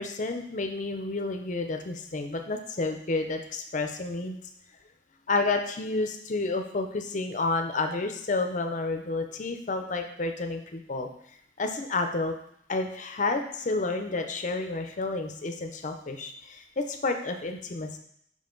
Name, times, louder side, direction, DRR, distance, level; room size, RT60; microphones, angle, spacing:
voice 1, 0.0-4.4 5.3-11.1 11.6-12.3 12.7-18.0, left 3 dB, 45° left, 5 dB, 0.6 m, -30 dB
5.5 x 5.2 x 3.9 m, 0.71 s
head